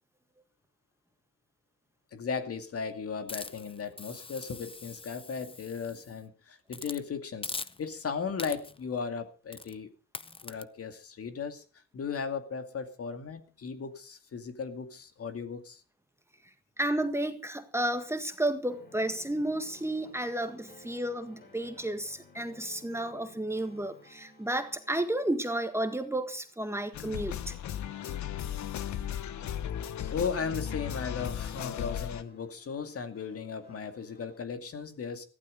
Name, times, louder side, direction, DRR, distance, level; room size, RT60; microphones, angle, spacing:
voice 1, 2.1-7.5 7.8-9.9 10.4-11.6 11.9-15.8 29.3-29.7 30.1-35.2, left 5 dB, 50° left, 2.4 m, -36 dB
Hiss, 3.3-6.2 6.7-7.0 7.4-8.0 8.4-8.9 9.5-9.8 10.1-10.6, left 4 dB, 20° left, 0.7 m, -42 dB
voice 2, 16.8-27.6, right 1 dB, 10° right, 1.7 m, -32 dB
sound 1, 18.7-34.4, left 2 dB, 35° left, 5.6 m, -58 dB
sound 2, 26.9-32.2, left 10 dB, 70° left, 1.2 m, -36 dB
15.0 x 12.0 x 5.3 m
cardioid pair, 90°, 30 cm